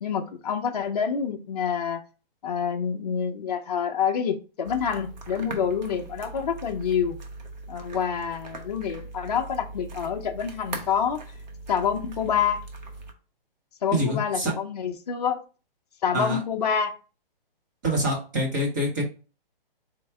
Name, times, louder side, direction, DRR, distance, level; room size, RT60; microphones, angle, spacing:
voice 1, 0.0-2.0 2.4-7.2 7.7-11.2 11.7-12.6 13.8-15.4 16.0-16.9, left 7 dB, 45° left, 0.5 m, -27 dB
sound 1, 4.6-13.1, right 3 dB, 50° right, 0.8 m, -40 dB
voice 2, 13.9-14.5 16.1-16.4 17.8-19.0, equal, 20° right, 0.8 m, -25 dB
4.5 x 2.1 x 4.5 m
hypercardioid pair, 170°, 29 cm